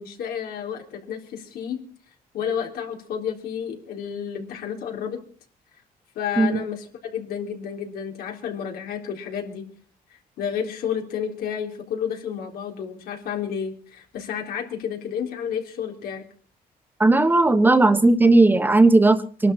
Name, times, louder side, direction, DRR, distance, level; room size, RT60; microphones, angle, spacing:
voice 1, 0.0-1.8 2.3-5.2 6.2-6.9 7.1-9.7 10.4-16.3, left 8 dB, 90° left, 2 dB, 3.8 m, -31 dB
voice 2, 17.0-19.5, right 2 dB, 10° right, 10 dB, 1.3 m, -16 dB
24.0 x 12.0 x 4.3 m, 0.42 s
cardioid pair, 150°, 15 cm